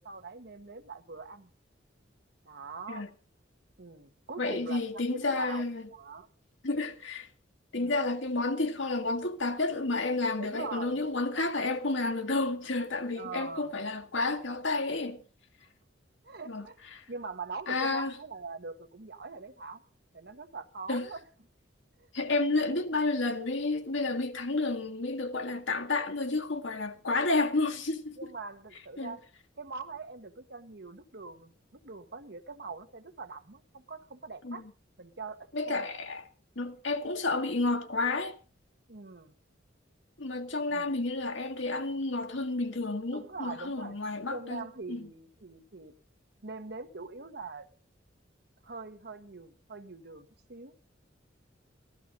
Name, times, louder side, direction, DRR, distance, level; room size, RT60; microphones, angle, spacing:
voice 1, 0.0-1.5 2.4-3.1 3.8-5.6 5.9-6.3 7.7-8.0 10.4-11.0 13.1-13.7 16.2-16.8 17.1-19.8 20.1-21.2 22.0-22.1 28.2-29.2 29.6-34.6 35.0-35.9 38.9-39.3 40.7-40.9 43.1-44.0 44.3-45.9 46.4-47.7 48.6-50.7, right 4 dB, 60° right, 1.3 m, -43 dB
voice 2, 4.4-5.8 6.6-7.3 7.7-15.2 16.5-16.6 16.9-17.0 17.7-18.1 20.9-21.1 22.1-28.2 29.0-29.2 34.4-34.6 35.5-36.2 36.5-38.3 40.2-45.1, left 3 dB, 70° left, 1.7 m, -31 dB
15.5 x 12.5 x 5.2 m
head